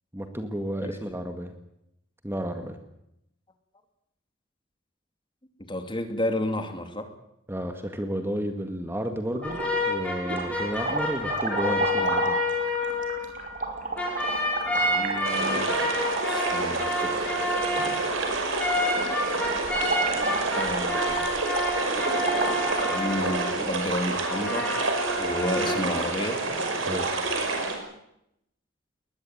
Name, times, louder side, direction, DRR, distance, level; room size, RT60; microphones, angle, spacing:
voice 1, 0.1-1.5 2.2-2.8 7.5-9.6 9.9-12.4 26.8-27.1, equal, 10° right, 6 dB, 2.0 m, -32 dB
voice 2, 5.6-7.1 14.6-15.7 16.3-17.4 20.6-21.2 22.9-24.7 25.2-26.4, left 1 dB, 25° left, 7 dB, 2.9 m, -31 dB
sound 1, 9.3-9.9 10.3-23.0, right 3 dB, 40° right, 5.3 m, -33 dB
sound 2, 9.4-13.7 14.0-23.8 24.2-25.8, left 1 dB, 5° left, 6.8 m, -29 dB
sound 3, 15.2-27.8, right 3 dB, 70° right, 5.5 m, -29 dB
21.0 x 20.5 x 9.2 m, 0.80 s
head